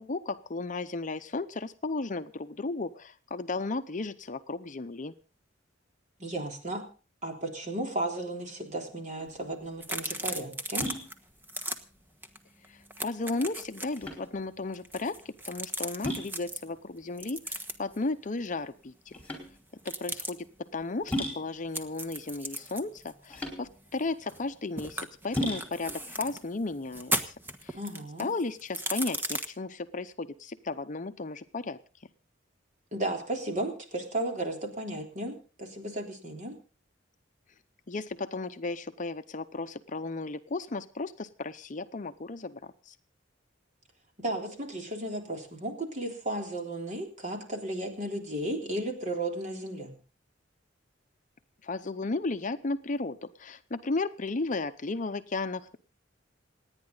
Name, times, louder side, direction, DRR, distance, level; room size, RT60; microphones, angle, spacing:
voice 1, 0.0-5.1 12.7-19.1 19.8-20.5 20.7-27.3 27.6-27.8 28.2-31.8 37.9-42.9 51.6-55.8, left 3 dB, 40° left, 10 dB, 0.7 m, -34 dB
voice 2, 6.2-6.9 7.2-10.9 27.7-28.3 32.9-36.6 44.2-49.9, right 1 dB, 40° right, 2 dB, 3.6 m, -34 dB
sound 1, 9.2-27.8, equal, 10° left, 4.4 m, -39 dB
sound 2, 9.8-11.1 11.4-11.8 12.2-12.4 12.6-14.0 14.7-16.6 17.2-18.0 19.8-20.3 21.7-24.5 24.8-26.4 26.9-29.5, right 1 dB, 10° right, 1.3 m, -36 dB
28.0 x 9.8 x 4.0 m, 0.36 s
head